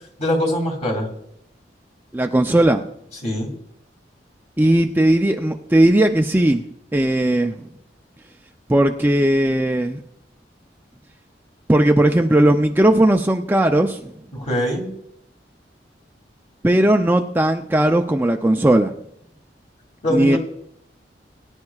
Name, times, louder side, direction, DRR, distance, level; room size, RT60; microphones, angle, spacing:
voice 1, 0.2-1.1 3.2-3.5 14.3-14.9 20.0-20.4, equal, 40° left, 1 dB, 2.6 m, -22 dB
voice 2, 2.1-2.8 4.6-6.7 6.9-7.5 8.7-10.0 11.7-14.1 16.6-18.9 20.1-20.4, right 1 dB, 10° right, 4 dB, 0.4 m, -17 dB
21.5 x 10.5 x 2.4 m, 0.74 s
head